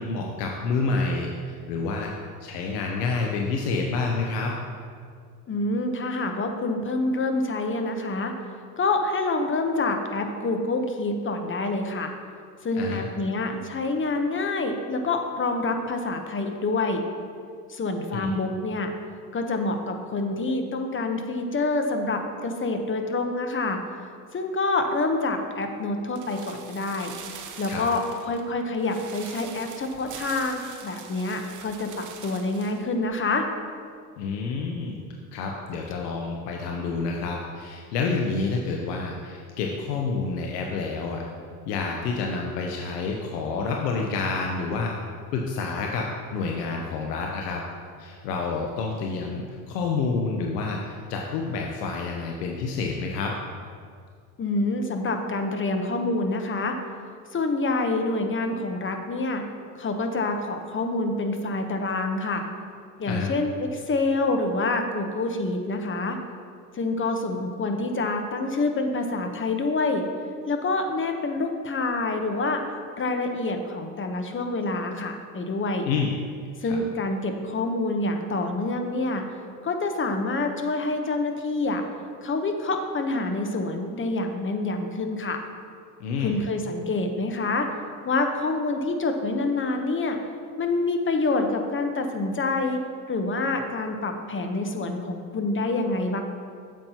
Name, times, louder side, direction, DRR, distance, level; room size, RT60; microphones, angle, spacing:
voice 1, 0.0-2.1 2.4-4.6 12.7-13.1 18.1-18.3 27.7-27.9 34.2-35.0 35.3-41.2 41.7-44.9 45.3-47.6 48.0-53.4 63.1-63.3 75.8-76.1 76.6-76.8 86.0-86.4, left 4 dB, 80° left, 1 dB, 0.9 m, -28 dB
voice 2, 5.5-8.3 8.8-12.1 12.6-17.0 17.7-18.9 19.3-23.8 24.3-27.1 27.6-33.5 54.4-56.8 57.3-59.4 59.8-62.4 63.0-66.2 66.7-70.0 70.5-72.6 73.0-75.9 76.6-79.2 79.6-81.8 82.2-85.4 86.2-87.7 88.0-90.2 90.6-92.8 93.1-96.2, left 2 dB, 25° left, 5 dB, 1.0 m, -27 dB
sound 1, 26.1-32.8 33.1-33.2, right 7 dB, 40° right, 1.0 m, -43 dB
9.1 x 7.4 x 2.9 m, 2.1 s
hypercardioid pair, 80°, 47 cm